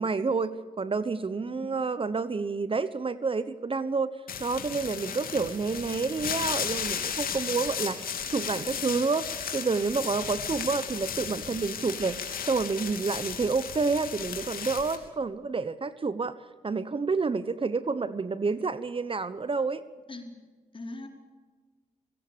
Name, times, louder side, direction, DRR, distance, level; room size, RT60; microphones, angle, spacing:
voice 1, 0.0-4.1 4.4-16.3 16.6-19.8, right 4 dB, 35° right, 14 dB, 1.1 m, -29 dB
sound 1, 4.3-15.0, left 7 dB, 70° left, 3.2 m, -35 dB
voice 2, 20.1-20.4 20.7-21.1, left 2 dB, 35° left, 4 dB, 4.6 m, -41 dB
25.0 x 17.0 x 7.0 m, 1.4 s
supercardioid pair, 50°, 15 cm